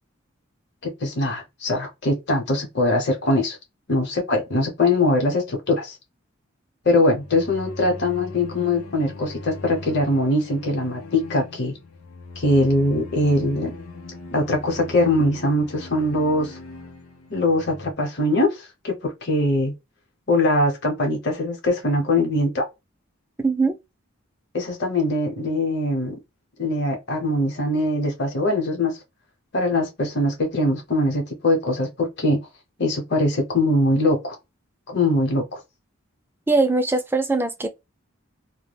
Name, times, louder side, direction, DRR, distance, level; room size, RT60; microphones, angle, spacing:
voice 1, 0.8-3.6 3.9-6.0 6.8-11.8 12.4-13.7 14.3-16.6 17.3-19.7 20.3-22.7 24.5-26.1 26.6-29.0 29.5-32.4 32.8-34.4 34.9-35.6, left 1 dB, 55° left, 0.9 m, -22 dB
sound 1, 7.0-17.9, left 3 dB, 85° left, 0.6 m, -40 dB
voice 2, 23.4-23.8 36.5-37.7, right 3 dB, 10° right, 0.3 m, -21 dB
2.3 x 2.1 x 3.3 m
head